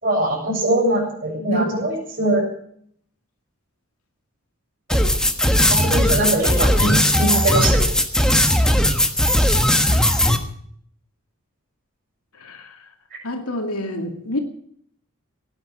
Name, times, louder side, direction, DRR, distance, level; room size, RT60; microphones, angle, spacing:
voice 1, 0.0-2.5 4.9-5.0 5.7-7.8, right 1 dB, 45° right, 7.0 m, -22 dB
sound 1, 4.9-10.4, left 1 dB, 5° left, 1.4 m, -17 dB
voice 2, 9.9-10.2 12.4-12.9 13.2-14.4, left 1 dB, 85° left, 2.4 m, -28 dB
18.0 x 9.9 x 7.6 m
head